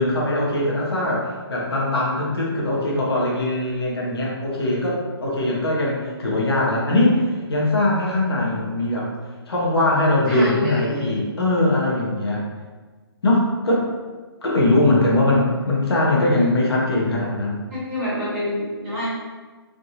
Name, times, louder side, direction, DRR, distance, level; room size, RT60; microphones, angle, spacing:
voice 1, 0.0-9.1 9.5-12.4 13.2-13.9 14.4-17.6, left 2 dB, 70° left, -3 dB, 0.9 m, -21 dB
voice 2, 10.3-11.1 17.7-19.1, equal, 15° right, -15 dB, 1.2 m, -26 dB
3.3 x 2.5 x 2.7 m, 1.4 s
hypercardioid pair, 180°, 13 cm